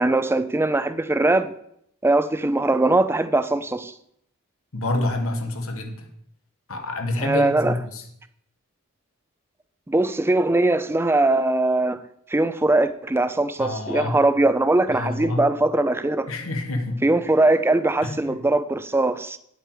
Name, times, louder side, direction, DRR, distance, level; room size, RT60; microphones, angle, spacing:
voice 1, 0.0-1.5 2.0-3.9 7.2-7.8 9.9-12.0 12.3-16.3 17.0-19.4, right 2 dB, 10° right, 0.4 m, -21 dB
voice 2, 4.7-6.1 6.7-8.0 13.6-14.2 14.9-15.4 16.3-17.0 18.0-18.4, left 2 dB, 65° left, 1.5 m, -27 dB
9.8 x 8.1 x 4.6 m
head